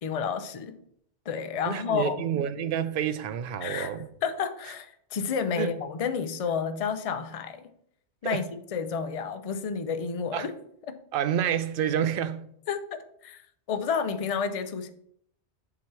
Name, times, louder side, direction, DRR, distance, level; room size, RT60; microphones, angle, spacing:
voice 1, 0.0-0.8 1.3-2.2 3.6-3.9 4.2-7.7 8.2-10.5 10.9-11.0 12.7-13.4 13.7-14.9, left 6 dB, 45° left, 0.5 m, -30 dB
voice 2, 1.7-4.1 5.6-5.7 8.2-8.4 10.3-10.5 11.1-12.5, right 9 dB, 60° right, 0.7 m, -28 dB
7.4 x 3.0 x 6.0 m
omnidirectional pair, 1.2 m